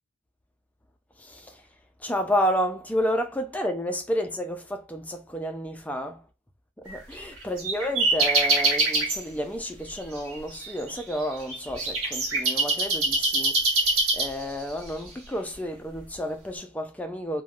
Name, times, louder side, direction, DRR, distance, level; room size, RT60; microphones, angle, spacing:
voice 1, 1.2-1.6 2.0-6.2 6.8-17.4, equal, 5° left, 0.3 m, -31 dB
sound 1, 6.9-9.2 9.9-14.7, right 2 dB, 65° right, 1.2 m, -24 dB
3.2 x 2.1 x 2.4 m
head